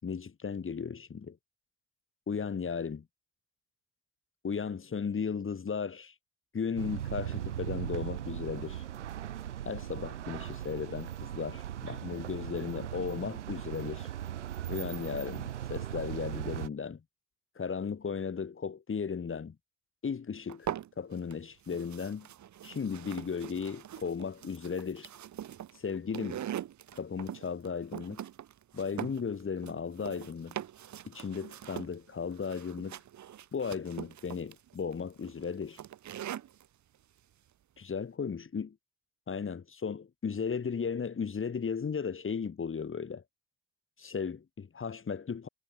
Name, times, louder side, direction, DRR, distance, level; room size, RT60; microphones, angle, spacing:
voice 1, 0.0-1.4 2.3-3.0 4.4-6.1 6.5-8.8 9.7-14.1 14.7-17.0 17.6-19.6 20.0-20.7 21.0-22.3 22.6-25.1 25.7-26.4 26.9-28.2 28.7-30.6 31.1-33.0 33.5-35.8 37.8-38.8 39.3-43.2 44.0-45.5, left 6 dB, 35° left, 3.6 m, -35 dB
sound 1, 6.8-16.7, right 11 dB, 90° right, 0.9 m, -38 dB
sound 2, 20.5-21.3 21.7-36.7, right 11 dB, 55° right, 3.6 m, -42 dB
figure-of-eight pair, 45°, 34 cm